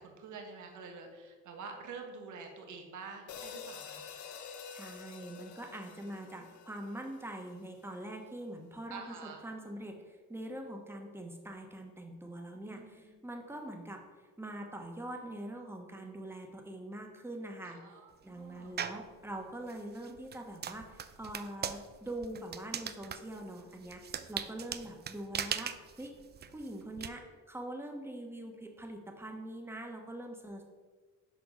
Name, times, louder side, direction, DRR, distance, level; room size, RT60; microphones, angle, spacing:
voice 1, 0.0-4.0 6.2-6.5 8.9-9.4 12.6-13.1 17.6-18.7, right 4 dB, 75° right, 3 dB, 1.3 m, -48 dB
sound 1, 3.3-7.7, left 6 dB, 70° left, 0.7 m, -48 dB
voice 2, 4.7-14.0 14.4-17.8 18.2-26.1 26.5-30.6, right 1 dB, 10° right, 2 dB, 1.2 m, -43 dB
sound 2, 18.8-19.1 19.7-27.1, right 8 dB, 35° right, 0.4 m, -40 dB
6.3 x 4.6 x 5.3 m, 1.4 s
cardioid pair, 90°, 30 cm